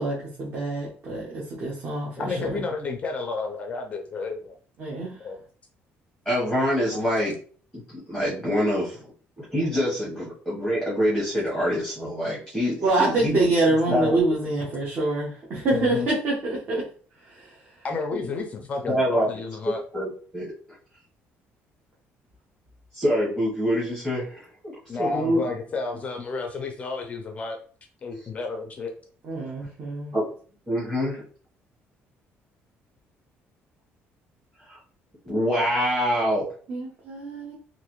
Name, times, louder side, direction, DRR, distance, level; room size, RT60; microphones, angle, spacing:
voice 1, 0.0-2.6 4.8-5.1 12.8-16.9 17.3-17.5 29.2-30.1 36.7-37.5, right 2 dB, 40° right, -5 dB, 1.0 m, -26 dB
voice 2, 2.2-4.5 5.2-5.4 14.0-14.1 15.7-16.1 17.8-19.8 24.9-27.6 28.0-28.9, left 4 dB, 30° left, 3 dB, 0.4 m, -31 dB
voice 3, 6.2-7.3 8.1-9.0 9.4-13.4 13.9-14.2 18.9-19.3 19.6-20.1 20.3-20.5 22.9-24.7 25.0-25.4 30.1-30.2 30.7-31.2 34.7-34.8 35.2-36.5, equal, 5° right, -7 dB, 1.0 m, -25 dB
3.2 x 2.5 x 3.0 m, 0.42 s
cardioid pair, 165°, 5 cm